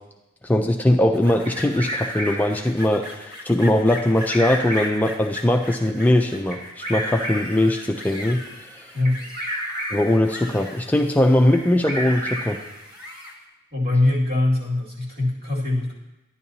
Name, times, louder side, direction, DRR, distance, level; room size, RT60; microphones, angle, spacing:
voice 1, 0.4-8.4 8.7-8.9 9.9-12.6, left 1 dB, 10° left, 2 dB, 0.4 m, -20 dB
sound 1, 1.1-13.4, left 2 dB, 20° right, 1.5 m, -39 dB
Bird vocalization bird call bird song, 1.5-2.6 4.0-5.1 6.5-7.7 9.1-10.2 11.5-12.7, equal, 35° right, 1.7 m, -31 dB
voice 2, 8.9-9.3 13.7-15.9, left 2 dB, 50° right, -5 dB, 2.4 m, -22 dB
12.0 x 10.0 x 2.8 m, 1.0 s
head